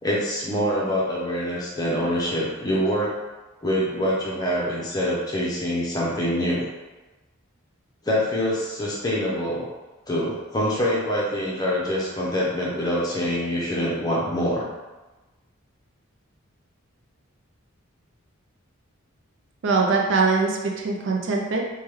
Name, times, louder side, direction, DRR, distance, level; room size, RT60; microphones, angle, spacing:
voice 1, 0.0-3.1 3.6-6.6 8.1-9.7 10.1-14.7, equal, 20° left, -6 dB, 0.6 m, -25 dB
voice 2, 19.6-21.7, right 4 dB, 60° right, 0 dB, 0.4 m, -22 dB
3.3 x 2.2 x 3.1 m, 1.1 s
head